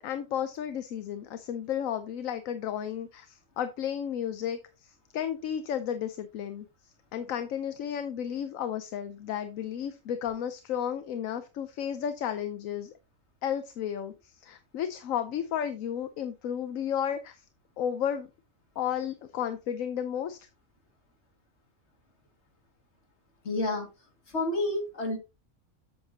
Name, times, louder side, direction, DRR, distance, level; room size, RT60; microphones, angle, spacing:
voice 1, 0.0-6.7 7.1-12.9 13.4-17.4 17.8-18.3 18.8-20.4, left 9 dB, 80° left, 10 dB, 1.1 m, -33 dB
voice 2, 23.4-23.9 24.3-25.2, left 2 dB, 55° left, 2 dB, 2.4 m, -29 dB
8.2 x 7.2 x 2.8 m, 0.27 s
omnidirectional pair, 1.4 m